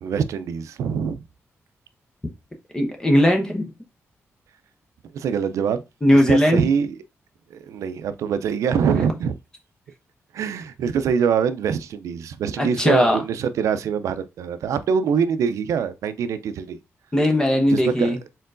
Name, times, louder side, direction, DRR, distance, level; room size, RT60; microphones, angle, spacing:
voice 1, 0.0-1.2 5.1-5.8 6.1-7.0 7.5-9.3 10.3-16.8 17.7-18.2, right 7 dB, 90° right, 0.4 m, -24 dB
voice 2, 2.7-3.6 6.0-6.6 12.6-13.2 17.1-18.2, equal, 15° left, 0.8 m, -18 dB
4.4 x 3.8 x 2.5 m
wide cardioid pair, 155°, 5 cm